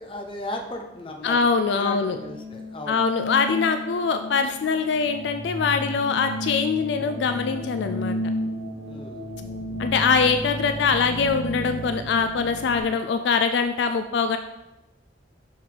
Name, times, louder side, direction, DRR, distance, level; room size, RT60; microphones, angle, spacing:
voice 1, 0.0-3.0 8.9-9.2, left 2 dB, 30° left, 3 dB, 0.7 m, -35 dB
voice 2, 1.2-2.2 2.9-8.2 9.8-14.4, left 5 dB, 70° left, 8 dB, 0.3 m, -23 dB
sound 1, 1.8-12.8, equal, 10° right, 1.9 m, -33 dB
6.2 x 4.7 x 3.8 m, 0.97 s
head